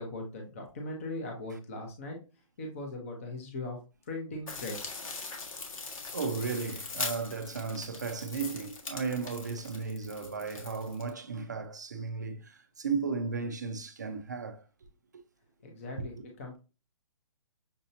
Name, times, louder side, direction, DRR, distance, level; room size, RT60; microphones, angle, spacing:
voice 1, 0.0-2.2 2.6-3.8 4.1-5.2 15.6-16.6, left 2 dB, 25° left, 0.8 m, -39 dB
sound 1, 4.5-11.1, left 4 dB, 75° left, 1.6 m, -41 dB
voice 2, 6.1-14.6 15.9-16.0, right 5 dB, 30° right, 0.4 m, -35 dB
6.6 x 2.8 x 2.7 m
hypercardioid pair, 180°, 18 cm